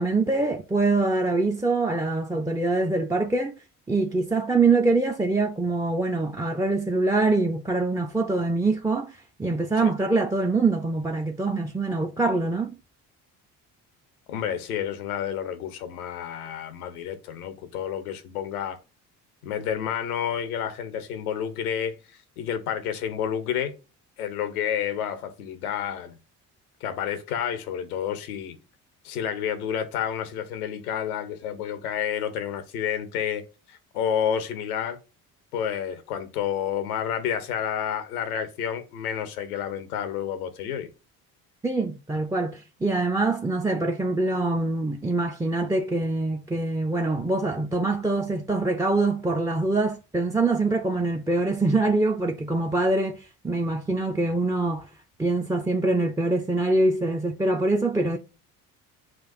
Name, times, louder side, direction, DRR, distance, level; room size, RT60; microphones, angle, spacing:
voice 1, 0.0-3.5 3.9-12.7 41.6-54.9 55.2-58.2, right 3 dB, 10° right, 0.4 m, -24 dB
voice 2, 14.3-18.8 19.4-23.7 24.2-26.2 26.8-28.6 29.0-33.4 33.7-35.0 35.5-40.9, left 9 dB, 90° left, 0.8 m, -30 dB
6.1 x 2.3 x 2.5 m
hypercardioid pair, 60°, 43 cm